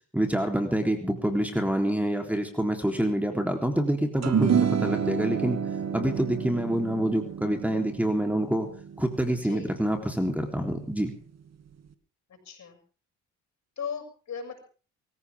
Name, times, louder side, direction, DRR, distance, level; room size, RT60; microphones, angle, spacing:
voice 1, 0.1-5.6 5.9-8.7 9.0-11.1, right 1 dB, 5° right, 4 dB, 3.6 m, -27 dB
sound 1, 4.2-10.8, right 7 dB, 50° right, 2.2 m, -29 dB
voice 2, 9.4-9.8 12.3-12.8 13.8-14.6, left 6 dB, 55° left, 6 dB, 7.2 m, -38 dB
24.5 x 16.0 x 3.7 m, 0.38 s
supercardioid pair, 70°, 34 cm